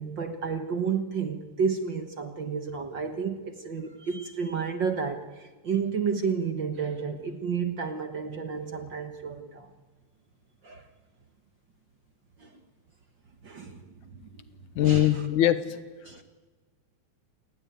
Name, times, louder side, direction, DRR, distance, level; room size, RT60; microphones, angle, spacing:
voice 1, 0.0-9.7 10.6-10.9 12.4-12.6 13.4-14.3 14.8-15.2 16.0-16.2, right 6 dB, 50° right, 7 dB, 1.6 m, -31 dB
voice 2, 14.8-15.8, left 12 dB, 80° left, 12 dB, 2.6 m, -22 dB
28.0 x 20.0 x 9.2 m, 1.3 s
omnidirectional pair, 3.4 m